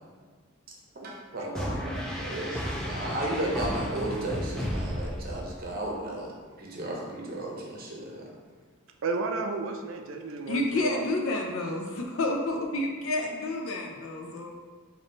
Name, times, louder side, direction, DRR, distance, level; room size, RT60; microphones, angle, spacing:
voice 1, 0.9-6.3 6.6-8.3, right 1 dB, 45° right, -2 dB, 0.7 m, -34 dB
sound 1, 1.5-5.8, equal, 5° left, 0.3 m, -33 dB
voice 2, 9.0-11.1, right 3 dB, 70° right, 4 dB, 0.4 m, -32 dB
voice 3, 10.5-14.5, left 2 dB, 80° left, 1 dB, 0.6 m, -29 dB
3.6 x 2.7 x 3.8 m, 1.5 s
head